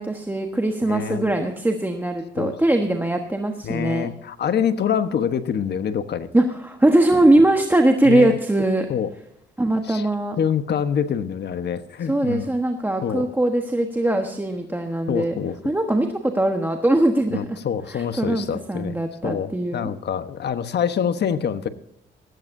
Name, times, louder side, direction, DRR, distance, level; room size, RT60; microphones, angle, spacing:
voice 1, 0.0-4.1 6.3-8.9 9.6-10.4 12.0-15.4 15.6-17.6 17.9-19.9, right 1 dB, 10° right, 4 dB, 1.3 m, -21 dB
voice 2, 0.9-1.3 2.4-2.5 3.6-6.3 8.0-8.3 8.9-9.1 9.9-10.0 10.4-12.5 13.0-13.2 15.1-15.5 17.3-19.0 19.2-21.7, left 8 dB, 60° left, 10 dB, 1.2 m, -25 dB
16.0 x 15.5 x 2.7 m, 0.77 s
cardioid pair, 90°, 20 cm